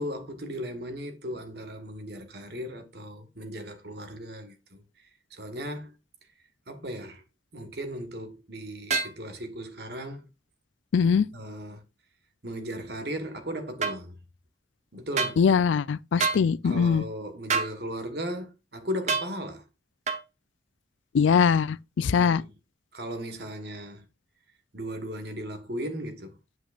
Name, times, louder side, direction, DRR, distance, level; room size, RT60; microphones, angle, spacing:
voice 1, 0.0-4.8 5.3-5.9 6.7-7.2 7.5-10.3 11.3-11.8 12.4-14.2 14.9-15.4 16.6-19.6 22.1-22.5 22.9-24.0 24.7-26.4, equal, 55° right, 1.4 m, -36 dB
sound 1, 8.9-9.2 13.8-14.0 15.2-15.4 16.2-16.4 17.5-17.7 19.1-19.3 20.1-20.2, right 4 dB, 35° right, 1.0 m, -26 dB
voice 2, 10.9-11.3 15.4-17.0 21.1-22.4, left 6 dB, 75° left, 0.4 m, -22 dB
8.3 x 7.8 x 2.5 m
head